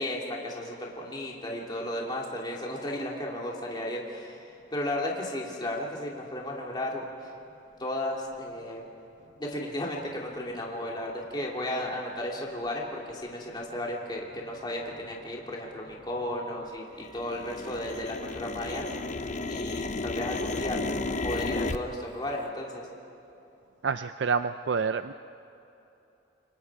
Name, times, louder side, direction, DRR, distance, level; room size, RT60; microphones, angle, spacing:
voice 1, 0.0-7.3 7.8-8.8 9.4-18.8 19.5-20.8 21.2-22.9, left 1 dB, 25° left, -2 dB, 2.8 m, -34 dB
sound 1, 10.9-11.0 11.6-11.8 12.4-12.7 13.1-13.2 13.5-14.0 14.3-16.6 16.9-21.8, left 3 dB, 45° left, 0.8 m, -34 dB
voice 2, 23.8-25.1, right 5 dB, 80° right, 10 dB, 0.5 m, -28 dB
28.5 x 24.0 x 4.8 m, 2.9 s
head